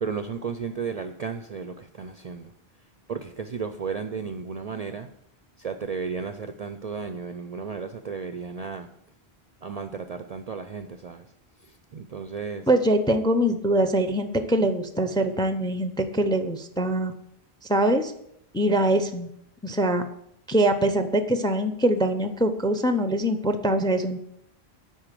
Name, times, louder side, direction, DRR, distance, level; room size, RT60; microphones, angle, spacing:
voice 1, 0.0-2.5 3.1-5.1 5.6-8.9 9.6-11.3 11.6-12.7, right 5 dB, 50° right, 8 dB, 0.5 m, -34 dB
voice 2, 12.7-17.1 17.7-18.1 18.5-19.3 19.6-20.1 20.5-24.2, right 1 dB, 5° left, 8 dB, 0.5 m, -23 dB
10.0 x 4.3 x 7.5 m, 0.75 s
omnidirectional pair, 1.1 m